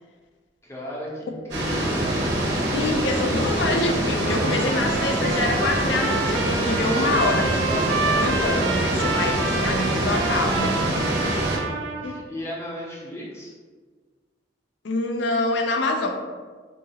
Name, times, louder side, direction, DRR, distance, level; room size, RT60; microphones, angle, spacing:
voice 1, 0.6-2.1 11.3-13.5, left 1 dB, 15° left, -4 dB, 0.6 m, -36 dB
sound 1, 1.5-11.6, right 1 dB, 60° right, 0.7 m, -24 dB
voice 2, 2.7-10.7 12.0-12.2 14.8-16.1, left 2 dB, 75° left, 3 dB, 0.4 m, -26 dB
Trumpet, 4.2-12.2, right 4 dB, 85° right, 0.3 m, -29 dB
3.8 x 2.3 x 2.7 m, 1.5 s
head